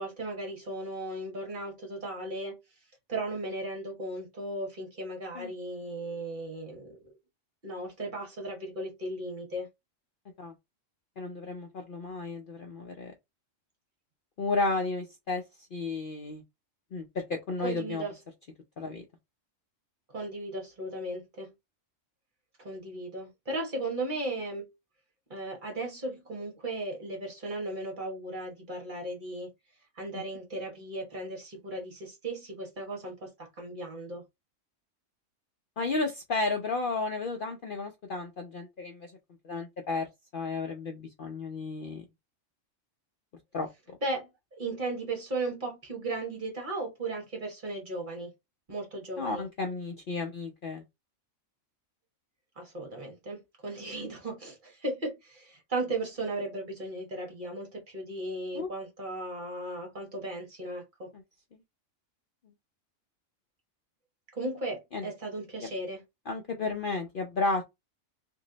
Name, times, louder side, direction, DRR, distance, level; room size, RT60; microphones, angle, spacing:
voice 1, 0.0-2.6 3.1-7.1 7.6-9.7 17.6-18.2 20.1-21.5 22.6-24.7 25.3-29.5 29.9-34.2 44.0-48.3 48.7-49.4 52.6-61.1 64.3-66.0, right 2 dB, 40° right, 1.3 m, -36 dB
voice 2, 11.2-13.1 14.4-15.4 15.7-16.4 16.9-18.0 18.8-19.0 35.8-39.1 39.4-40.1 40.3-42.0 43.5-43.7 49.2-50.8 58.5-58.7 64.9-65.1 66.3-67.7, left 3 dB, 55° left, 0.6 m, -32 dB
3.0 x 2.6 x 3.8 m
omnidirectional pair, 1.4 m